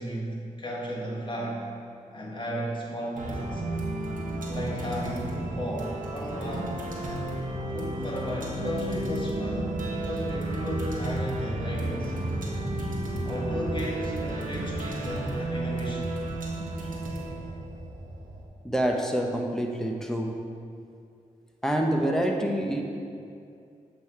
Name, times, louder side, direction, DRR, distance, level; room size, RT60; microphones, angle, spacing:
voice 1, 0.0-1.7 2.1-3.6 4.4-6.9 7.7-12.1 13.2-16.2, equal, 35° left, -4 dB, 1.6 m, -34 dB
sound 1, 3.1-18.4, right 1 dB, 70° right, 1.2 m, -32 dB
Bass guitar, 8.6-12.9, right 4 dB, 55° right, 0.4 m, -40 dB
voice 2, 18.6-20.4 21.6-22.8, right 1 dB, 5° left, 1 dB, 0.8 m, -26 dB
7.5 x 3.1 x 5.6 m, 2.4 s
cardioid pair, 55°, 14 cm